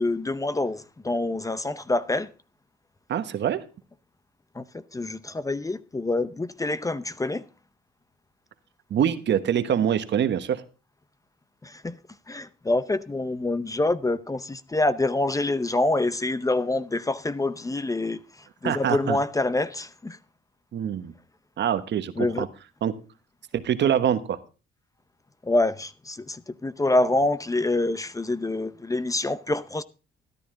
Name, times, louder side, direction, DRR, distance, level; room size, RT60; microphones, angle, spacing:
voice 1, 0.0-2.3 4.5-7.4 11.6-12.0 12.3-20.2 22.2-22.5 25.4-29.8, left 2 dB, 15° left, 0.7 m, -26 dB
voice 2, 3.1-3.6 8.9-10.6 18.6-19.2 20.7-21.1 21.6-22.5 22.8-22.9 23.5-24.4, right 9 dB, 65° right, 1.2 m, -24 dB
13.0 x 12.0 x 3.8 m
cardioid pair, 90°, 20 cm